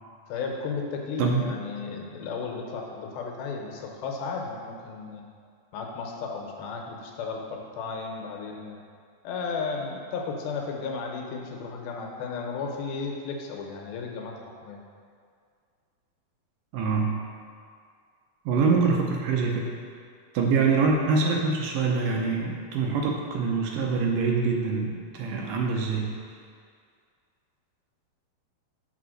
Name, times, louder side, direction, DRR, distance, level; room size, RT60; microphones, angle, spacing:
voice 1, 0.3-5.3 5.7-8.8 9.2-14.8, left 4 dB, 85° left, 1 dB, 2.7 m, -34 dB
voice 2, 1.2-1.5 16.7-17.2 18.5-19.7 20.3-26.1, right 4 dB, 75° right, 0 dB, 2.2 m, -25 dB
6.7 x 4.7 x 6.3 m, 2.2 s
omnidirectional pair, 4.2 m